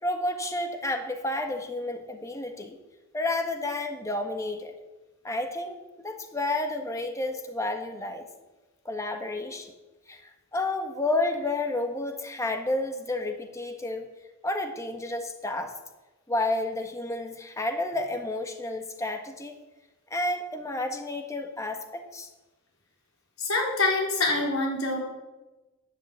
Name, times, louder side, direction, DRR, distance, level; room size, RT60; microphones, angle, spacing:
voice 1, 0.0-2.8 3.1-4.7 5.2-8.2 8.8-9.7 10.1-10.2 10.5-14.1 14.4-15.7 16.3-19.6 20.1-22.3, left 2 dB, 15° left, 5 dB, 1.3 m, -31 dB
voice 2, 23.4-25.0, left 3 dB, 90° left, -1 dB, 4.3 m, -25 dB
10.5 x 9.6 x 8.0 m, 1.1 s
head